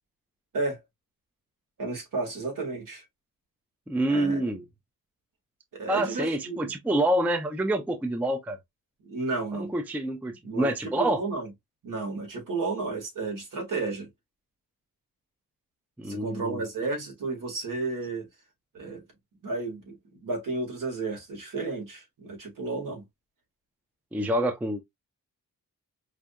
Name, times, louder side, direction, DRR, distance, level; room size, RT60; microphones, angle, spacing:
voice 1, 1.8-3.0 4.1-4.4 5.7-6.8 9.0-9.7 10.4-11.5 11.8-14.1 16.1-18.3 18.7-19.0 19.4-23.0, right 3 dB, 65° right, 1.8 m, -32 dB
voice 2, 3.9-4.6 5.9-8.6 9.5-11.2 16.0-16.6 24.1-24.8, right 1 dB, 5° right, 0.4 m, -27 dB
4.9 x 2.6 x 2.2 m
wide cardioid pair, 150°, 34 cm